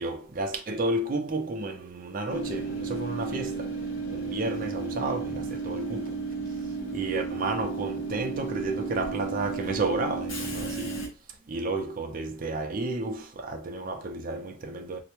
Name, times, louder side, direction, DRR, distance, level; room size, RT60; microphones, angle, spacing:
voice 1, 0.0-15.0, right 2 dB, 40° right, 0.4 m, -32 dB
Train / Subway metro underground, 2.3-11.1, right 4 dB, 70° left, 1.3 m, -33 dB
3.2 x 2.1 x 3.0 m
head